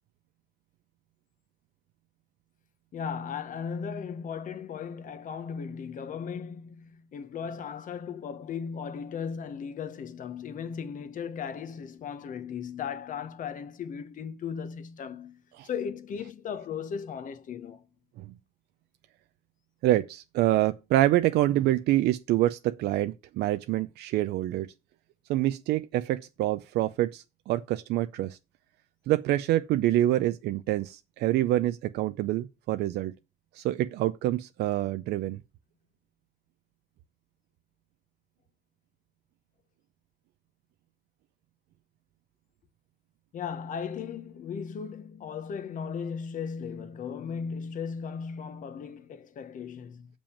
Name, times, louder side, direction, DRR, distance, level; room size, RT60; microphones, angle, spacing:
voice 1, 2.9-17.9 43.3-50.1, left 6 dB, 50° left, 1.1 m, -36 dB
voice 2, 19.8-24.7 25.3-28.4 29.1-33.1 33.5-35.4, right 14 dB, 75° right, 0.5 m, -26 dB
7.1 x 5.2 x 7.1 m
cardioid pair, 110°, 17 cm